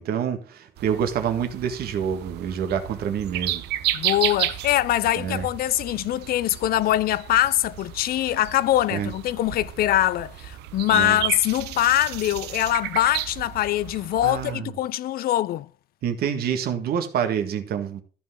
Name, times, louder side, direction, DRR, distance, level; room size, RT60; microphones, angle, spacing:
voice 1, 0.0-3.6 5.1-5.5 8.9-9.1 10.9-11.2 14.2-14.7 16.0-18.0, right 8 dB, 65° right, 1.7 m, -27 dB
sound 1, 0.8-14.5, right 13 dB, 80° right, 0.8 m, -33 dB
voice 2, 3.9-15.7, left 14 dB, 65° left, 0.5 m, -23 dB
13.5 x 5.8 x 3.7 m
cardioid pair, 110°, 17 cm